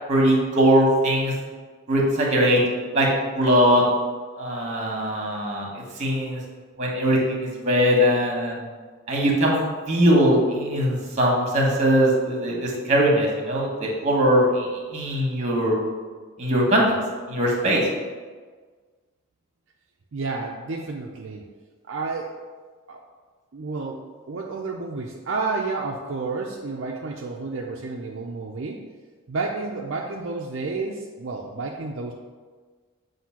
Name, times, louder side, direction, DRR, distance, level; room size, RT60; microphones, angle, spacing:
voice 1, 0.1-1.3 1.9-2.6 2.9-3.1 3.3-3.8 4.4-5.7 6.0-6.4 6.8-8.6 9.1-9.6 9.9-15.8 16.4-16.9 17.3-17.8, equal, 35° right, -1 dB, 1.3 m, -21 dB
voice 2, 20.1-21.4 21.9-22.3 22.9-23.0 23.5-28.8 29.3-32.1, right 3 dB, 60° right, 0 dB, 0.5 m, -30 dB
7.6 x 2.7 x 5.7 m, 1.5 s
head